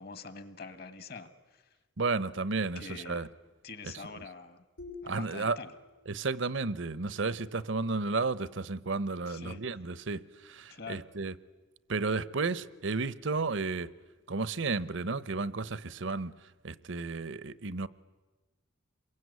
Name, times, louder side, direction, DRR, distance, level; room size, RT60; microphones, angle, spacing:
voice 1, 0.0-1.7 2.7-3.3 3.6-4.6 5.0-5.7 9.3-9.6 10.7-11.0, left 4 dB, 45° left, 13 dB, 1.6 m, -45 dB
voice 2, 2.0-3.3 3.8-4.2 5.1-5.6 6.1-11.3 11.9-13.9 14.3-16.3 16.6-17.9, right 3 dB, 60° right, 18 dB, 0.9 m, -33 dB
sound 1, 4.8-6.5, left 4 dB, 85° left, 5.8 m, -49 dB
28.0 x 22.5 x 9.5 m, 1.2 s
head